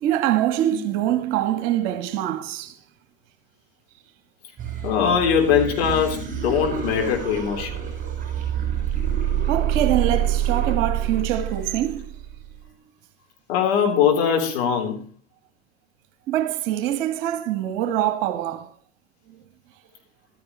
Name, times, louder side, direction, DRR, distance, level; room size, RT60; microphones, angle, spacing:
voice 1, 0.0-2.7 9.5-12.1 16.3-18.7, right 12 dB, 45° right, 1.5 m, -24 dB
sound 1, 4.6-12.6, right 9 dB, 20° right, 6.3 m, -26 dB
voice 2, 4.8-7.8 13.5-15.0, left 7 dB, 55° left, 3.9 m, -21 dB
14.0 x 13.5 x 3.2 m
figure-of-eight pair, 85°, 38 cm